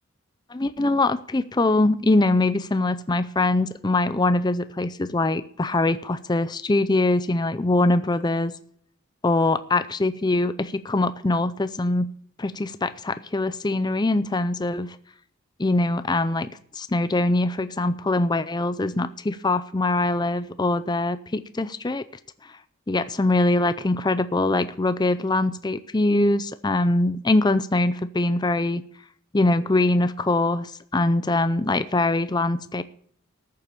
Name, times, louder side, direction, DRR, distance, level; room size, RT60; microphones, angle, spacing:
voice 1, 0.5-8.6 9.2-12.1 12.4-15.0 15.6-22.1 22.9-28.8 29.3-32.8, left 2 dB, 20° left, 12 dB, 0.5 m, -23 dB
13.5 x 7.7 x 6.8 m, 0.62 s
head